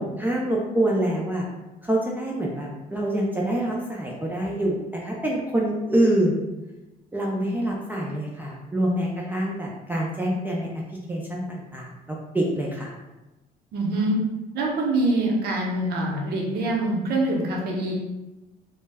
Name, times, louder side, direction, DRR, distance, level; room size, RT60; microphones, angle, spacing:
voice 1, 0.0-1.5 1.8-6.4 7.1-10.7 11.1-12.9, right 1 dB, 10° right, -3 dB, 0.3 m, -26 dB
voice 2, 13.7-14.2 14.5-17.9, right 2 dB, 70° right, -2 dB, 0.7 m, -24 dB
2.2 x 2.0 x 3.3 m, 1.0 s
cardioid pair, 110°, 17 cm